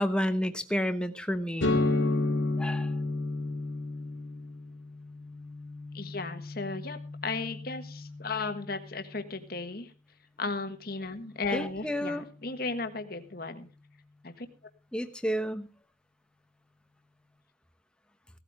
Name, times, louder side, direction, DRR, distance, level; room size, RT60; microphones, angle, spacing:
voice 1, 0.0-1.8 2.6-2.9 11.5-12.2 14.9-15.7, equal, 5° left, 8 dB, 1.0 m, -30 dB
sound 1, 1.6-9.2, left 2 dB, 90° left, 2.0 m, -32 dB
voice 2, 5.9-9.9 10.4-13.7 14.2-14.5, left 3 dB, 50° left, 7 dB, 1.5 m, -35 dB
17.0 x 13.0 x 3.6 m, 0.34 s
head